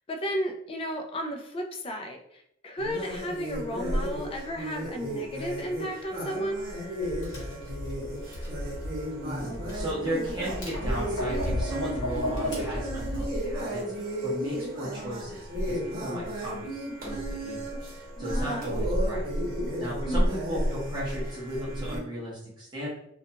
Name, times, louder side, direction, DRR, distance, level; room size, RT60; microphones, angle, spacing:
voice 1, 0.1-6.6 18.2-18.7 20.0-20.3, equal, 30° left, 3 dB, 0.3 m, -34 dB
sound 1, 2.8-22.0, equal, 50° right, 0.9 m, -33 dB
Tap, 7.0-13.2, left 1 dB, 70° left, 0.9 m, -34 dB
voice 2, 9.2-16.7 17.0-17.9 18.2-19.3 19.8-22.9, right 1 dB, 25° right, -7 dB, 0.7 m, -36 dB
2.4 x 2.2 x 2.7 m, 0.75 s
head